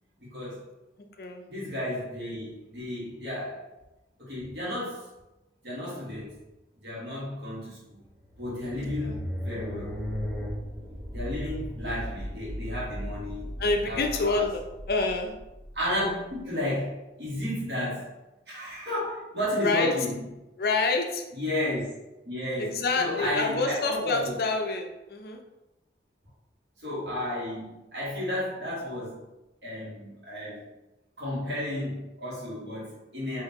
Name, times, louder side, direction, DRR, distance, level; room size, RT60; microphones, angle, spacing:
voice 1, 0.3-0.7 1.5-3.7 4.2-5.1 5.6-6.3 6.8-8.0 8.4-9.9 11.1-13.5 13.8-14.5 15.7-18.1 18.5-20.3 21.3-21.9 22.2-24.3 26.8-29.2 29.6-30.6 31.2-33.4, left 1 dB, 75° right, -7 dB, 1.5 m, -33 dB
sound 1, 8.0-16.4, equal, ahead, 0.6 m, -37 dB
voice 2, 8.8-9.2 13.6-15.3 19.6-19.9 20.6-21.2 22.6-25.4, left 3 dB, 55° left, 4 dB, 0.4 m, -27 dB
3.7 x 2.7 x 2.8 m, 0.98 s
head